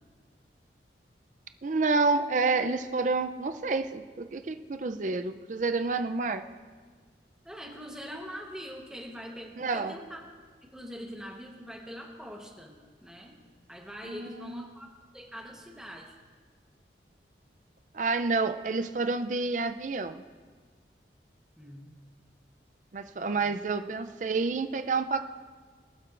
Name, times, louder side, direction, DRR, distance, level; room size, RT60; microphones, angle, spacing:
voice 1, 1.6-6.4 9.6-9.9 14.1-14.7 17.9-20.2 22.9-25.2, right 3 dB, 45° right, 9 dB, 0.5 m, -29 dB
voice 2, 7.4-10.2 10.7-12.8 13.0-13.4 13.7-14.9 15.1-16.1 21.6-21.9 23.4-23.5, equal, 5° right, 0 dB, 1.0 m, -43 dB
23.0 x 7.7 x 2.5 m, 1.5 s
head